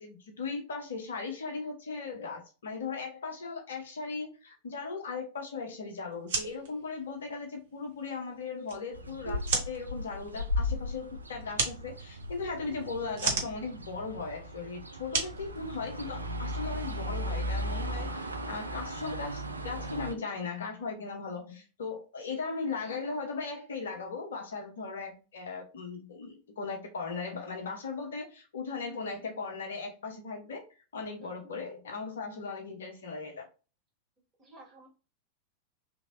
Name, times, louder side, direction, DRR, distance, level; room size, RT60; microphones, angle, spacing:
voice 1, 0.0-30.6 30.9-33.5, left 4 dB, 65° left, 3 dB, 0.8 m, -38 dB
sound 1, 6.1-16.3, right 4 dB, 55° right, 0.9 m, -37 dB
sound 2, 8.9-20.1, left 1 dB, 80° right, 0.4 m, -36 dB
voice 2, 31.2-31.5 34.4-34.9, right 2 dB, 20° right, -4 dB, 1.9 m, -53 dB
3.1 x 3.0 x 2.6 m, 0.32 s
figure-of-eight pair, 90°, 0 cm